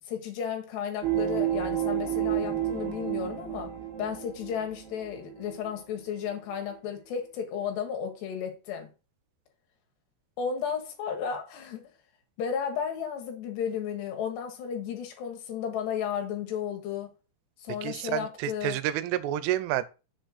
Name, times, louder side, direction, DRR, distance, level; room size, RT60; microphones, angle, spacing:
voice 1, 0.1-3.7 4.0-8.9 10.4-11.8 12.4-17.1 17.6-18.8, left 7 dB, 70° left, 3.2 m, -33 dB
sound 1, 1.0-5.8 6.3-6.4, right 11 dB, 65° right, 2.9 m, -31 dB
voice 2, 17.8-19.8, right 13 dB, 85° right, 3.2 m, -29 dB
7.1 x 4.5 x 6.3 m
omnidirectional pair, 5.6 m